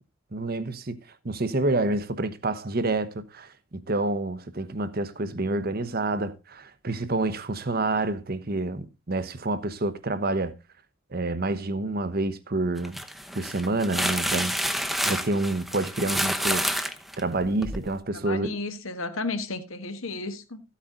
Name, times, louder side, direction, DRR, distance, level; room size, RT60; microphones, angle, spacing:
voice 1, 0.3-0.9 1.2-10.5 11.1-13.0 13.3-14.5 15.0-16.9 17.2-18.5, right 2 dB, 45° right, 1.0 m, -28 dB
sound 1, 12.8-17.9, equal, ahead, 0.8 m, -29 dB
voice 2, 18.1-20.6, left 3 dB, 85° left, 1.5 m, -33 dB
14.0 x 8.4 x 3.8 m
head